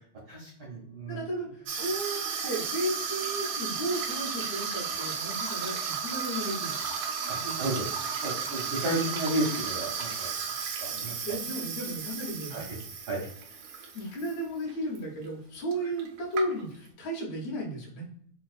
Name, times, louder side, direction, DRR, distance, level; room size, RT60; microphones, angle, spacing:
voice 1, 0.3-1.2 6.3-6.5 7.6-7.8 8.2-10.3 10.8-11.2 12.5-12.6 13.1-13.2, right 1 dB, 70° right, -6 dB, 1.2 m, -32 dB
voice 2, 1.1-6.8 7.4-7.7 11.0-12.6 12.9-13.0 13.9-18.0, right 1 dB, 70° left, -3 dB, 1.9 m, -34 dB
Water tap faucet / Sink (filling or washing), 1.7-14.4 14.7-15.0 15.7-15.8 16.0-16.9, right 6 dB, 90° right, 1.4 m, -34 dB
4.6 x 2.2 x 2.4 m, 0.64 s
omnidirectional pair, 3.3 m